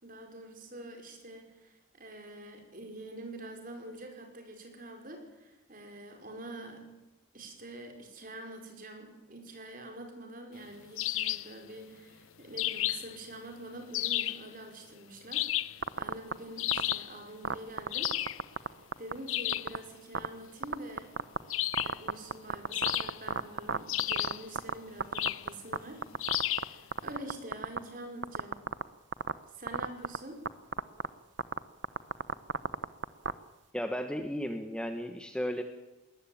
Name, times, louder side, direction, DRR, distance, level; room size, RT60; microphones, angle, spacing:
voice 1, 0.0-7.0 7.3-18.2 18.6-18.7 19.0-21.2 21.8-26.1 26.5-28.7 29.5-30.5, right 1 dB, 40° right, 4 dB, 5.2 m, -46 dB
sound 1, 11.0-11.5 12.6-13.2 13.9-14.5 15.3-15.8 16.6-17.1 17.9-18.4 19.3-19.7 21.5-22.0 22.7-23.4 23.9-24.5 25.1-25.5 26.2-26.8, left 15 dB, 80° left, 0.7 m, -32 dB
sound 2, 15.8-16.3 16.7-16.9 17.4-18.7 18.9-19.1 19.5-19.8 20.1-20.3 20.6-21.4 21.7-24.7 25.0-25.8 26.0-26.6 26.9-27.8 28.2-28.8 29.1-29.3 29.7-30.2 30.5-30.6 30.7-31.1 31.4-31.6 31.8-33.3, right 4 dB, 60° right, 1.0 m, -30 dB
voice 2, 33.7-35.6, equal, 5° left, 6 dB, 1.2 m, -34 dB
21.0 x 19.5 x 8.8 m, 1.1 s
head